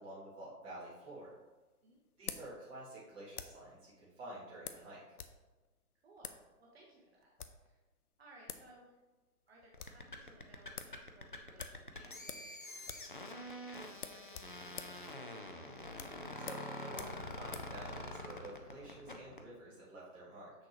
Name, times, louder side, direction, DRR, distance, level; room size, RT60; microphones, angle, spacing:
voice 1, 0.0-1.3 2.2-5.0 16.4-20.5, right 1 dB, 10° right, -8 dB, 1.6 m, -50 dB
sound 1, 0.8-3.7 4.6-5.4 5.6-5.7 6.2-6.4 7.2-7.7 8.2-8.3 8.5-8.7 9.0-9.1 9.4-10.0 10.4-10.5 10.8-11.0 11.6-12.6 12.8-13.2 13.4-13.5 13.9-17.8, left 7 dB, 70° left, 0.8 m, -48 dB
voice 2, 6.0-7.3 7.6-7.8 8.2-9.0 9.5-15.7, right 2 dB, 40° right, -3 dB, 1.1 m, -63 dB
sound 2, 9.7-19.4, left 1 dB, 35° left, 0.4 m, -46 dB
7.0 x 6.3 x 2.9 m, 1.3 s
hypercardioid pair, 155°, 46 cm